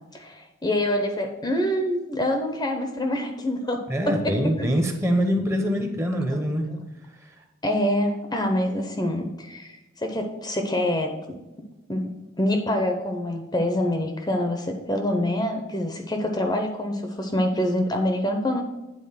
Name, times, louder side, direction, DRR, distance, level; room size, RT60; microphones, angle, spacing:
voice 1, 0.1-4.7 6.7-6.8 7.6-11.2 11.9-18.6, left 1 dB, 20° left, 4 dB, 0.7 m, -26 dB
voice 2, 3.9-6.7, equal, 15° right, 4 dB, 0.8 m, -24 dB
8.8 x 3.9 x 5.6 m, 1.0 s
head